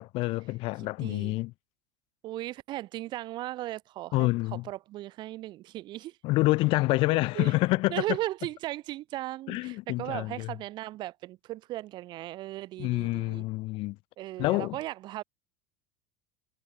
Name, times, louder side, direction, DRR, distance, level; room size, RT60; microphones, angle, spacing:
voice 1, 0.0-1.5 4.1-4.6 6.2-8.0 9.5-10.5 12.8-14.0 14.4-14.8, left 21 dB, 55° left, 0.7 m, -27 dB
voice 2, 1.0-1.4 2.2-6.2 7.3-7.5 7.9-13.4 14.2-15.2, right 16 dB, 45° right, 0.4 m, -37 dB
hypercardioid pair, 80°, 11 cm